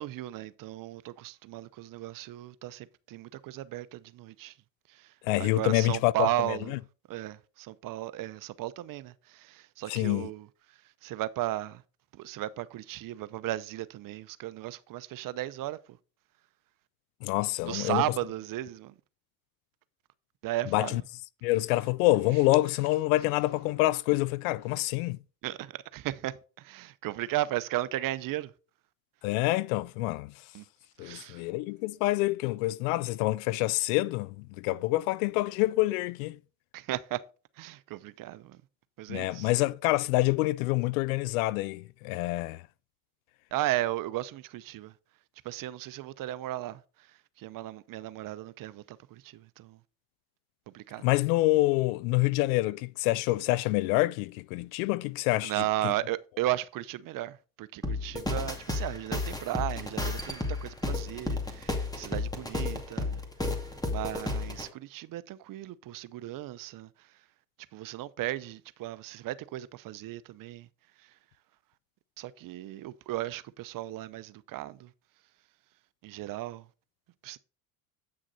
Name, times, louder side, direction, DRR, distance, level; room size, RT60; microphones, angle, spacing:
voice 1, 0.0-4.5 4.9-6.8 7.1-10.5 11.0-11.8 12.2-15.8 17.6-18.9 20.4-21.0 25.4-28.5 30.5-30.6 31.0-31.4 36.7-37.2 37.6-38.6 39.0-39.5 43.5-44.9 45.4-46.8 47.4-49.8 50.7-51.0 55.4-63.2 63.9-66.9 67.7-70.7 72.2-74.9 76.0-76.6 77.2-77.4, right 15 dB, 50° right, 0.8 m, -35 dB
voice 2, 5.2-6.8 9.9-10.3 17.2-18.0 20.7-21.0 21.4-25.2 29.2-30.3 31.0-36.4 39.1-42.6 51.0-55.9, left 19 dB, 75° left, 0.6 m, -27 dB
sound 1, 57.8-64.7, left 2 dB, 10° left, 2.2 m, -32 dB
8.9 x 6.3 x 4.2 m
hypercardioid pair, 75°, 43 cm